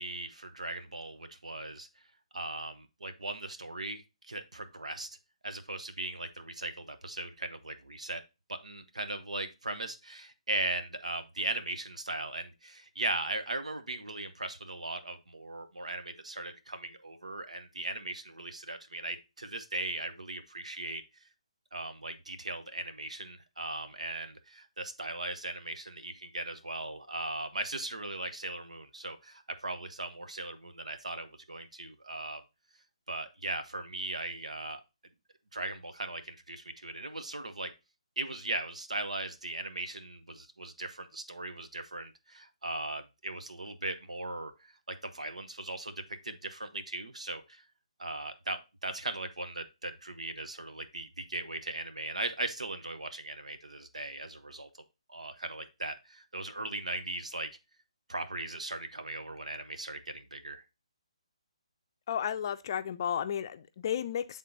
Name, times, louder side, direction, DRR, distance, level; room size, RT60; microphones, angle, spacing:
voice 1, 0.0-1.9 2.3-5.1 5.4-8.2 8.5-21.0 21.7-32.4 33.1-34.8 35.5-37.7 38.2-47.6 48.0-54.7 55.1-57.5 58.1-60.6, right 2 dB, 85° right, 1.0 m, -38 dB
voice 2, 62.1-64.4, left 9 dB, 40° left, 0.5 m, -33 dB
7.5 x 3.6 x 4.0 m
figure-of-eight pair, 145°, 4 cm